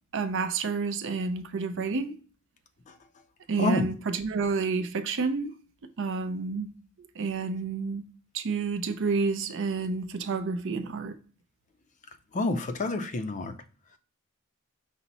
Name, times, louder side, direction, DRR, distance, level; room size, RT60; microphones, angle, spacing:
voice 1, 0.1-2.1 3.5-5.5 6.0-6.7 7.2-8.1 8.3-11.1, right 4 dB, 60° right, 0.5 m, -29 dB
voice 2, 12.3-13.5, left 2 dB, 35° left, 0.4 m, -28 dB
5.7 x 2.0 x 3.9 m
head